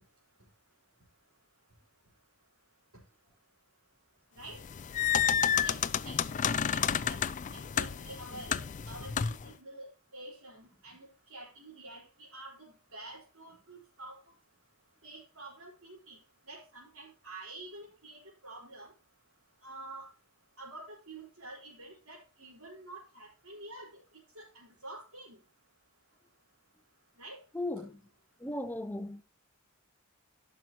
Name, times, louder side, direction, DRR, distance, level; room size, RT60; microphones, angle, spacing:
sound 1, 4.5-9.5, left 8 dB, 35° left, 0.4 m, -30 dB
voice 1, 5.6-6.2 6.7-7.2 7.5-14.2 15.0-16.2 16.4-18.9 19.6-20.1 20.6-24.0 24.3-25.4 27.2-27.4 27.8-27.9, right 2 dB, 70° right, 4.1 m, -48 dB
voice 2, 27.5-28.0 28.4-29.2, left 1 dB, 10° left, 0.7 m, -36 dB
15.5 x 6.2 x 2.9 m
head